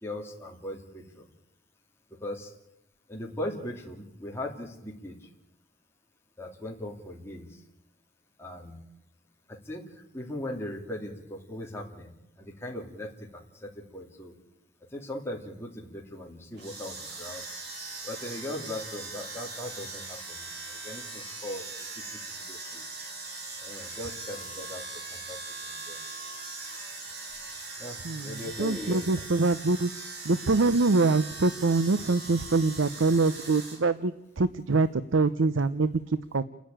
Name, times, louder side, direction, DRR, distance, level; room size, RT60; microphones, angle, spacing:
voice 1, 0.0-1.2 2.2-2.5 3.1-5.3 6.4-7.6 8.4-8.8 9.5-12.1 12.4-14.4 14.9-17.5 18.0-21.7 22.0-22.8 23.6-24.8 25.1-25.4 25.6-26.0 27.8-29.2, left 1 dB, 15° left, -1 dB, 2.7 m, -39 dB
sound 1, 16.5-33.8, right 3 dB, 60° right, 6.1 m, -40 dB
voice 2, 28.0-29.9 30.2-36.4, right 3 dB, 90° right, 14 dB, 0.7 m, -25 dB
29.5 x 10.5 x 8.9 m, 0.87 s
head